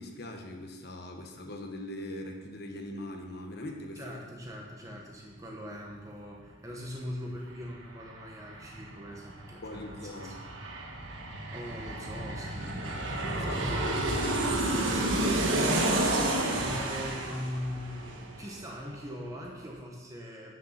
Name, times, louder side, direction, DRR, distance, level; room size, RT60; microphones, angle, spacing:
voice 1, 0.0-4.1 9.6-10.3 13.3-13.9, left 1 dB, 50° left, 3 dB, 1.2 m, -41 dB
voice 2, 4.0-10.3 11.5-20.6, equal, 15° right, -1 dB, 1.1 m, -42 dB
Aircraft, 7.3-7.4 7.7-19.0 19.3-19.4, right 1 dB, 70° right, 1.4 m, -31 dB
9.4 x 6.8 x 5.8 m, 1.3 s
head